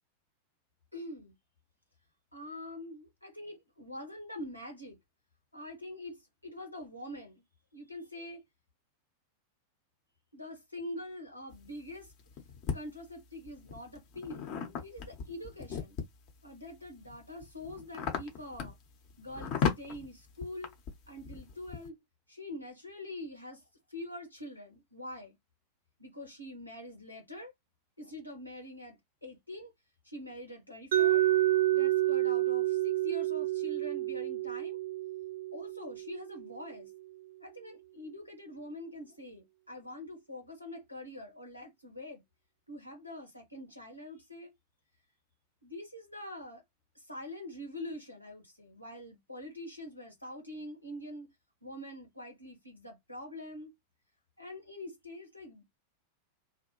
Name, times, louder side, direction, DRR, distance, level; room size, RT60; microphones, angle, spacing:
voice 1, 0.9-1.3 2.3-5.0 5.5-7.4 7.7-8.4 10.3-12.1 12.7-14.5 14.8-16.0 16.4-18.7 19.2-20.8 21.1-22.0 22.3-25.4 26.0-27.5 28.0-29.7 30.0-31.2 31.7-34.8 35.5-36.9 37.4-42.2 42.7-44.5 45.6-46.6 46.9-51.3 51.6-53.7 54.4-55.6, left 1 dB, 85° left, 1.3 m, -45 dB
sound 1, 11.5-12.8 13.5-16.3 16.9-21.9, left 6 dB, 40° left, 0.9 m, -36 dB
Mallet percussion, 30.9-36.8, right 15 dB, 55° right, 0.3 m, -29 dB
2.6 x 2.2 x 3.0 m
figure-of-eight pair, 90°, 0 cm